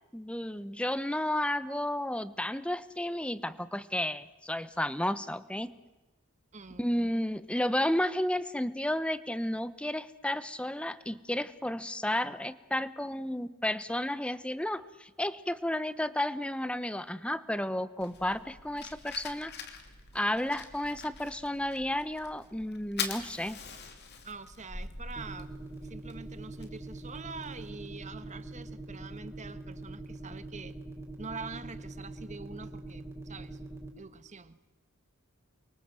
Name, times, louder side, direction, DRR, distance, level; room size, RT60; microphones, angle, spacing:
voice 1, 0.1-5.7 6.8-19.5 20.1-23.6, left 1 dB, 5° left, 14 dB, 0.9 m, -32 dB
voice 2, 6.5-7.4 24.2-25.5 25.8-30.8 31.2-33.6 34.0-34.6, right 4 dB, 35° right, 11 dB, 1.4 m, -45 dB
Fire, 18.0-27.7, left 5 dB, 50° left, 3.0 m, -44 dB
sound 1, 25.2-33.9, right 2 dB, 15° right, 4.6 m, -43 dB
29.0 x 24.0 x 7.7 m, 1.1 s
head